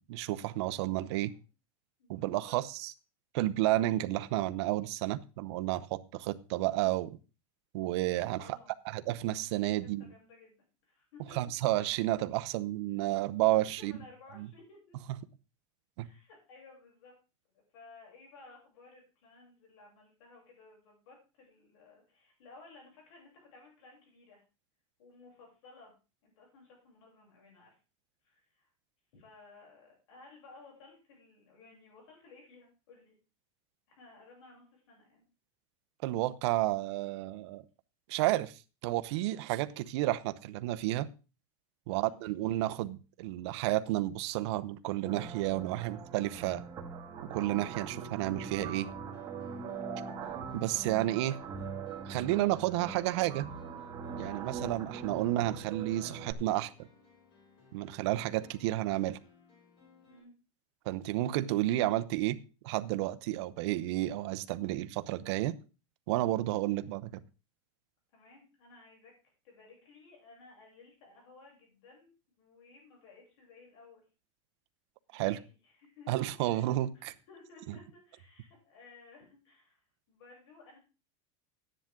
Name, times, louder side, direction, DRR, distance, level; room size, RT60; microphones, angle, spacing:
voice 1, 0.0-1.3 2.1-2.9 3.3-7.1 7.7-8.6 8.9-10.1 11.3-13.9 14.4-14.5 16.0-16.1 36.0-37.6 38.1-41.1 41.9-46.6 47.2-48.9 50.5-51.4 52.0-53.5 54.1-56.7 57.7-59.2 60.8-62.4 62.6-65.5 66.1-67.1 75.2-75.4 76.1-77.1 77.7-77.8, right 16 dB, 55° right, 0.8 m, -31 dB
voice 2, 2.0-2.6 8.4-8.7 9.8-11.4 13.6-15.0 16.0-17.1 17.5-24.4 25.0-25.9 26.2-27.8 28.2-28.7 29.1-33.1 33.9-35.3 41.9-42.2 49.9-50.2 54.2-54.6 60.1-60.3 66.7-66.8 68.1-69.1 69.4-74.0 75.1-75.4 75.6-79.8 80.1-80.8, left 3 dB, 65° left, 7.5 m, -57 dB
sound 1, 45.1-56.3, right 5 dB, 20° right, 1.9 m, -42 dB
sound 2, 49.0-60.2, left 5 dB, 35° left, 6.3 m, -61 dB
13.0 x 10.0 x 3.8 m
supercardioid pair, 165°, 17 cm